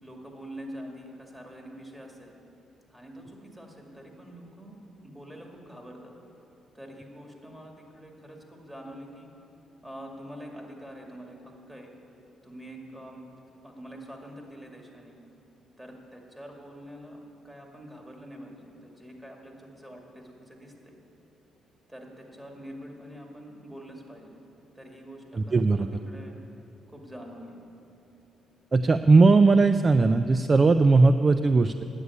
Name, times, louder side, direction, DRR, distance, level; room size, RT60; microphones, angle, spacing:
voice 1, 0.0-2.3 2.9-4.8 5.0-6.1 6.7-9.3 9.8-11.9 12.4-13.3 13.6-15.1 15.8-21.0 21.9-24.4 24.7-26.4 26.9-27.6, equal, 10° right, 0 dB, 2.2 m, -45 dB
voice 2, 25.4-25.9 28.7-31.8, right 3 dB, 30° right, 10 dB, 0.3 m, -19 dB
9.6 x 8.2 x 9.6 m, 2.9 s
cardioid pair, 90°, 0 cm